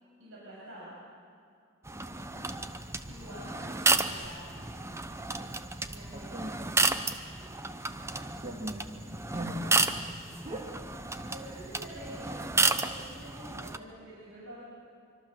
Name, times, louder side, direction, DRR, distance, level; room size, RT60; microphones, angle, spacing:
voice 1, 0.2-1.0 3.1-4.8 5.8-6.9 7.4-7.5 11.1-14.6, right 1 dB, 65° right, -7 dB, 7.0 m, -47 dB
sound 1, 1.8-13.8, right 3 dB, 10° right, 0.8 m, -32 dB
voice 2, 2.2-2.6 6.1-6.5 8.4-8.9 9.3-9.9 10.4-10.8 11.5-11.6, right 1 dB, 30° right, 0 dB, 2.3 m, -39 dB
25.5 x 25.0 x 7.8 m, 2.4 s
head